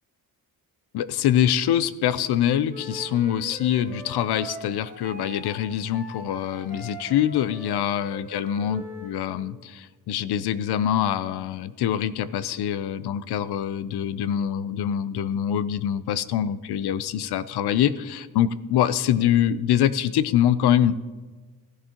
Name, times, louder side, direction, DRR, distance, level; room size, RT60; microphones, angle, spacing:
voice 1, 0.9-20.9, left 10 dB, 85° left, 16 dB, 0.6 m, -24 dB
Wind instrument woodwind instrument, 2.7-9.1, equal, 20° left, 3.2 m, -41 dB
16.0 x 11.0 x 2.9 m, 1.3 s
wide cardioid pair, 165°, 38 cm